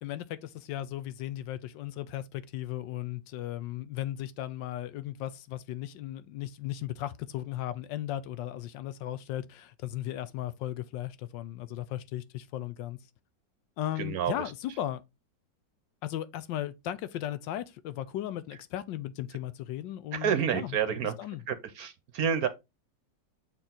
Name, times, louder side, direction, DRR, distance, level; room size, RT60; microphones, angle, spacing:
voice 1, 0.0-13.0 13.8-15.0 16.0-20.8 21.0-21.4, left 12 dB, 80° left, 1.3 m, -36 dB
voice 2, 14.0-14.3 20.1-21.1 21.5-22.5, right 8 dB, 65° right, 1.1 m, -29 dB
6.7 x 4.5 x 3.7 m
omnidirectional pair, 2.0 m